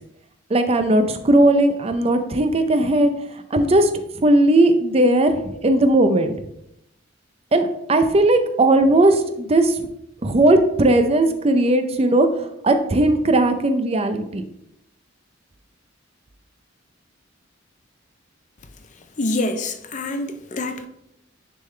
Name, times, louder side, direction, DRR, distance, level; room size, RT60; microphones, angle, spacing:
voice 1, 0.5-3.9 4.2-6.3 7.5-9.9 10.2-14.4, right 1 dB, 30° right, 0.5 m, -17 dB
voice 2, 19.2-20.9, left 2 dB, 40° left, 0.6 m, -26 dB
9.8 x 3.7 x 3.2 m
head